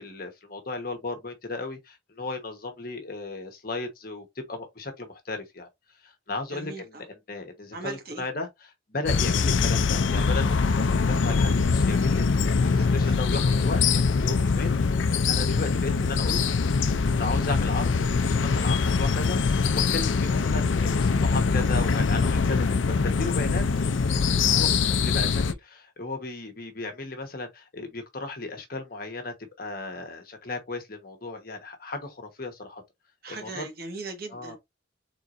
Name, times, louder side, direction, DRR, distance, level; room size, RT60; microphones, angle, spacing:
voice 1, 0.0-5.7 6.0-16.5 17.1-23.6 24.5-32.8 33.3-33.7 34.3-34.6, left 3 dB, 50° left, 1.2 m, -35 dB
voice 2, 6.5-7.0 7.7-8.2 9.3-9.5 12.8-13.1 33.2-34.6, right 3 dB, 50° right, 1.5 m, -39 dB
sound 1, 9.1-25.5, left 5 dB, 75° left, 0.5 m, -23 dB
4.5 x 3.9 x 2.5 m
head